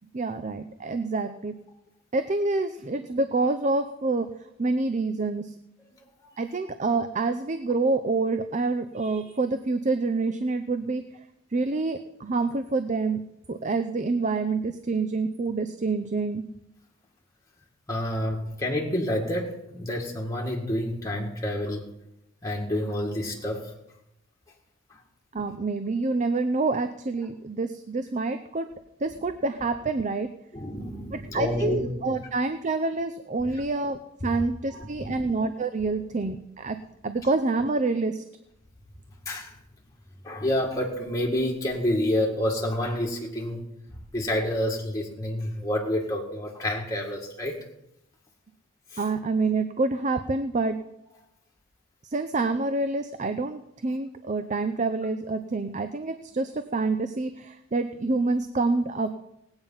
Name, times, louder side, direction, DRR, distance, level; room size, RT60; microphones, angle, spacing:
voice 1, 0.1-1.5 2.1-4.3 4.6-5.5 6.4-11.0 11.5-13.2 13.5-16.4 25.3-28.7 29.0-30.3 31.1-36.8 37.0-38.2 49.0-50.8 52.0-59.1, right 3 dB, 40° right, 9 dB, 0.6 m, -27 dB
voice 2, 17.9-21.9 22.4-23.7 24.9-25.0 30.5-31.9 34.2-34.4 34.7-35.3 39.3-39.5 40.2-43.6 44.1-47.6 48.9-49.0, left 1 dB, 15° left, -2 dB, 1.9 m, -29 dB
18.0 x 8.9 x 5.6 m, 0.83 s
head